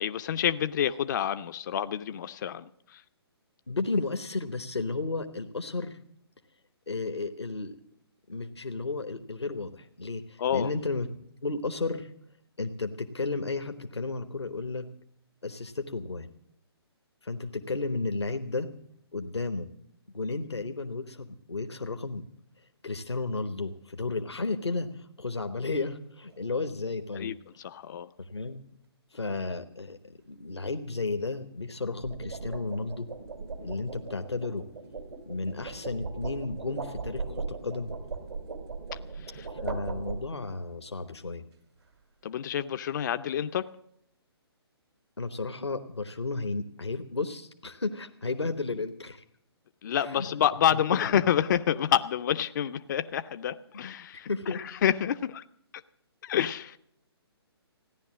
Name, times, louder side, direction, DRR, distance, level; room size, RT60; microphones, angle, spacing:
voice 1, 0.0-3.0 10.4-10.7 27.2-28.1 39.2-39.5 42.2-43.7 49.8-55.4 56.2-56.8, left 10 dB, 45° left, 11 dB, 0.5 m, -28 dB
voice 2, 3.7-6.0 6.9-7.8 8.3-11.1 11.4-12.1 12.6-14.9 15.4-16.3 17.2-18.7 19.1-19.7 20.1-22.2 22.8-27.3 28.2-28.6 29.1-33.1 33.6-34.7 35.3-37.9 39.5-41.4 45.2-49.2 50.0-50.4 50.7-51.0 54.1-54.6, left 3 dB, 85° left, 7 dB, 1.0 m, -33 dB
sound 1, 26.3-26.6 31.8-40.7, right 4 dB, 75° right, 2.4 m, -39 dB
15.0 x 10.5 x 7.4 m, 0.72 s
figure-of-eight pair, 135°, 14 cm